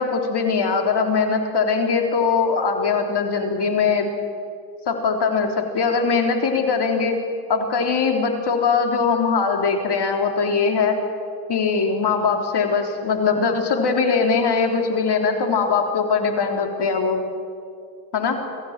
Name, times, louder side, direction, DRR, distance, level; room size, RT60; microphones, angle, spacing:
voice 1, 0.0-4.1 4.9-7.2 7.5-11.0 11.5-17.2 18.1-18.4, left 5 dB, 55° left, 4 dB, 3.9 m, -21 dB
24.0 x 15.5 x 9.1 m, 2.3 s
supercardioid pair, 60°, 49 cm